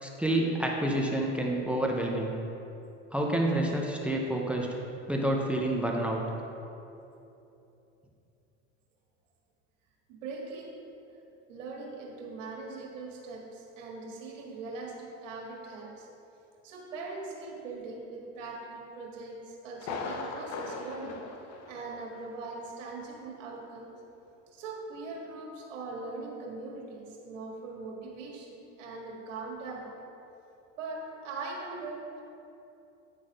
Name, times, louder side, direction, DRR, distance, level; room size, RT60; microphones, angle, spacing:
voice 1, 0.0-2.3 3.1-4.8 5.1-6.2, right 1 dB, 5° right, 0 dB, 0.6 m, -28 dB
voice 2, 10.1-10.8 11.1-16.1 16.6-21.4 21.6-23.9 24.5-29.9 30.8-32.2, right 3 dB, 85° right, -1 dB, 1.8 m, -41 dB
Thunder, 19.8-22.4 22.6-22.7 23.3-23.4, left 3 dB, 45° left, 0.8 m, -39 dB
9.5 x 4.2 x 4.9 m, 2.8 s
supercardioid pair, 125°, 37 cm